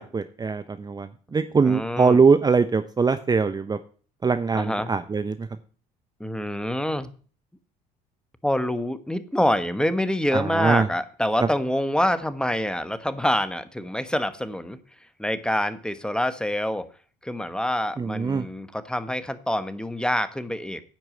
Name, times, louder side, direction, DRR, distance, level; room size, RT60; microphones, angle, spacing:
voice 1, 0.0-3.8 4.2-5.5 10.3-10.9 18.0-18.5, right 5 dB, 20° right, 10 dB, 0.7 m, -22 dB
voice 2, 1.6-2.2 4.5-4.9 6.2-7.1 8.4-14.8 15.2-16.9 17.2-20.8, left 1 dB, 5° left, 12 dB, 1.1 m, -26 dB
10.0 x 4.7 x 7.7 m, 0.40 s
hypercardioid pair, 70°, 18 cm